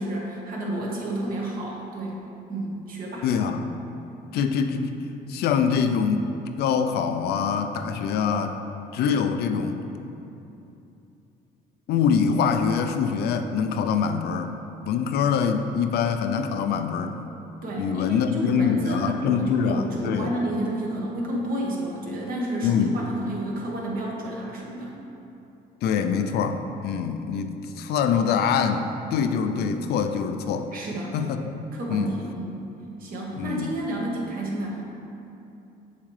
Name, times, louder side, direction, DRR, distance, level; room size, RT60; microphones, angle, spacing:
voice 1, 0.0-2.2 2.5-3.3 17.6-25.0 30.7-31.1 31.7-32.6 33.0-34.9, right 1 dB, 60° right, -3 dB, 1.5 m, -30 dB
voice 2, 3.2-3.7 4.3-5.0 5.3-6.3 6.6-8.6 8.9-9.8 11.9-14.5 14.8-17.2 17.8-20.3 22.6-22.9 25.8-30.7 31.1-31.5 31.9-32.1 33.4-33.7, left 6 dB, 70° left, 7 dB, 0.5 m, -24 dB
7.2 x 6.6 x 3.2 m, 2.8 s
cardioid pair, 110°, 17 cm